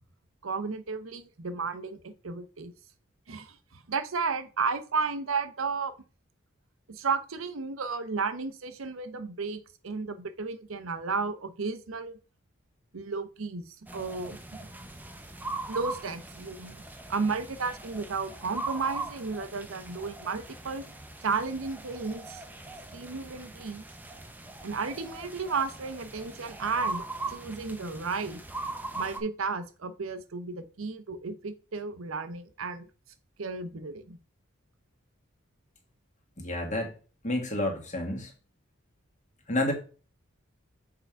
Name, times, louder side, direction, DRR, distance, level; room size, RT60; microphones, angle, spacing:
voice 1, 0.4-2.7 3.3-3.6 3.9-5.9 6.9-12.2 12.9-14.4 15.7-16.8 17.1-20.8 21.2-22.4 22.9-23.8 24.6-28.4 29.0-32.9 33.4-34.2, right 4 dB, 80° right, 0.8 m, -33 dB
sound 1, 13.9-29.2, right 3 dB, 10° right, 0.7 m, -40 dB
voice 2, 36.4-36.9 37.2-38.3 39.5-39.7, left 1 dB, 35° left, 1.7 m, -29 dB
6.8 x 3.8 x 4.5 m
head